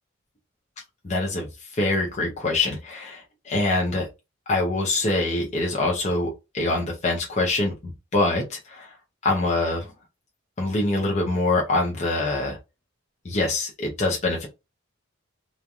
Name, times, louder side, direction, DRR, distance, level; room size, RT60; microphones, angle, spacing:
voice 1, 1.0-1.5 1.7-4.1 4.5-8.9 9.2-9.9 10.6-12.6 13.2-14.5, left 2 dB, 30° left, 0.6 m, -24 dB
3.1 x 2.3 x 2.5 m
head